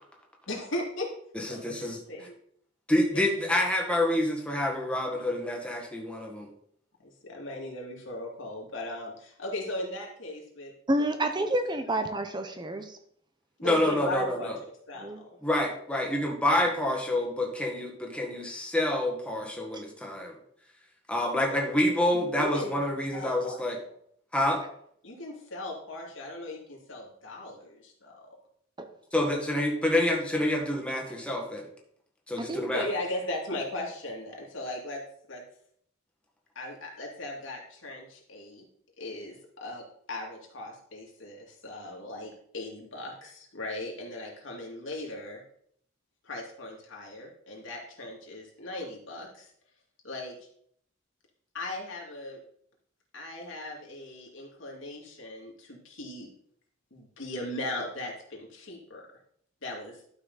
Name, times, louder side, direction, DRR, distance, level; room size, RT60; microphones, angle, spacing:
voice 1, 0.5-1.1 1.5-2.3 7.0-10.7 11.0-11.1 11.4-11.5 13.6-14.5 14.9-15.3 22.4-22.7 23.1-23.6 25.0-28.3 32.7-35.0 35.3-35.4 36.5-38.7 39.0-45.4 46.2-49.5 50.0-50.5 51.5-52.4 53.1-56.3 56.9-59.0 59.6-60.0, left 1 dB, 75° left, -1 dB, 2.6 m, -38 dB
voice 2, 1.3-2.0 2.9-6.5 13.6-14.5 15.4-20.3 21.1-23.8 24.3-24.6 29.1-31.7 32.3-32.8, left 1 dB, 5° left, 0 dB, 1.6 m, -27 dB
voice 3, 10.9-13.0 13.6-13.9 15.0-15.2 19.7-19.8 28.8-28.9 32.4-32.6, right 1 dB, 25° right, 7 dB, 0.8 m, -30 dB
12.0 x 5.8 x 4.1 m, 0.66 s
head